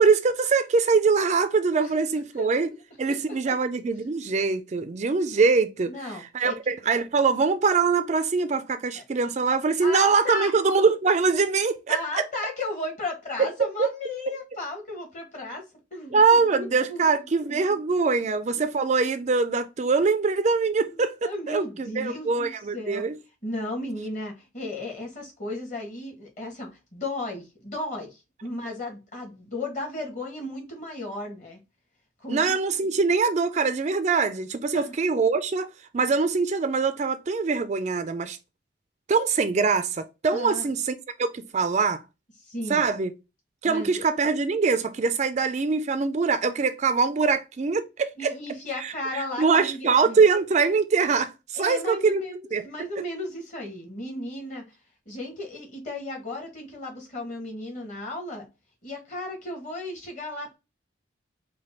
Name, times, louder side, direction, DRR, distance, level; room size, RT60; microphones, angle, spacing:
voice 1, 0.0-2.7 3.0-12.0 13.4-13.5 16.1-23.2 32.3-35.7 35.9-38.4 39.1-40.9 41.2-42.0 42.7-43.1 43.6-48.3 48.8-52.2 52.5-52.6, right 4 dB, 35° right, 0.3 m, -23 dB
voice 2, 5.9-6.5 8.9-9.0 9.8-10.5 11.9-15.6 15.9-17.0 17.4-17.7 20.9-23.0 23.4-31.6 32.2-32.5 34.7-34.9 40.3-40.7 42.4-42.9 43.6-44.0 48.2-50.2 51.6-54.6 55.0-58.5 58.8-60.6, left 2 dB, 40° left, 1.6 m, -35 dB
4.9 x 2.3 x 4.2 m
head